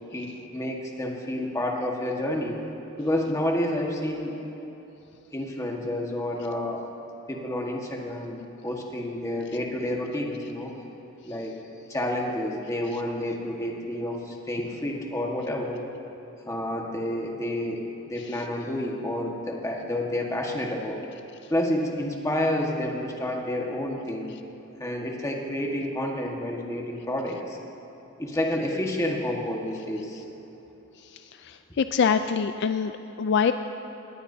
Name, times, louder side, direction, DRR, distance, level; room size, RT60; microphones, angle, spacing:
voice 1, 0.1-2.6 3.0-4.4 5.3-6.8 7.3-10.7 11.2-11.6 11.9-15.8 16.4-21.1 21.5-24.3 24.8-27.6 28.2-30.2, left 1 dB, 15° left, 0 dB, 1.5 m, -29 dB
voice 2, 31.8-32.9 33.2-33.5, left 6 dB, 55° left, 9 dB, 0.4 m, -23 dB
20.0 x 17.5 x 2.7 m, 3.0 s
head